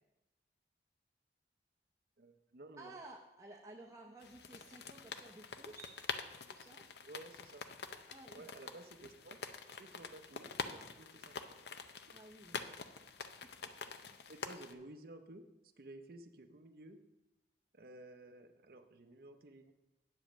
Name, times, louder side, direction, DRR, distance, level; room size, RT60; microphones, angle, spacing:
voice 1, 2.2-3.0 7.0-7.7 8.3-9.4 9.7-11.5 14.3-15.5 15.8-17.0 17.7-19.7, right 2 dB, 55° right, 6 dB, 0.6 m, -54 dB
voice 2, 2.8-6.0 6.4-6.9 8.1-8.5 12.1-12.8 13.4-14.2, right 2 dB, 20° right, -2 dB, 0.7 m, -55 dB
sound 1, 4.2-14.7, left 5 dB, 65° left, 0.6 m, -46 dB
9.0 x 5.1 x 7.2 m, 0.99 s
head